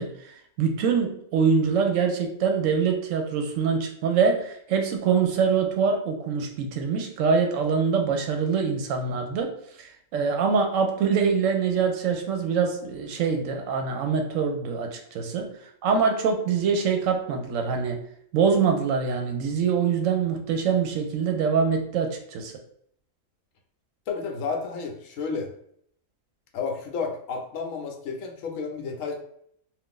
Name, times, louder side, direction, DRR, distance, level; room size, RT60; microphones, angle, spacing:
voice 1, 0.0-9.5 9.8-15.5 15.8-18.0 18.3-22.5, right 6 dB, 70° right, 3 dB, 0.9 m, -24 dB
voice 2, 24.1-25.5 26.5-29.1, left 5 dB, 75° left, 3 dB, 0.9 m, -31 dB
2.5 x 2.4 x 3.6 m, 0.66 s
omnidirectional pair, 1.5 m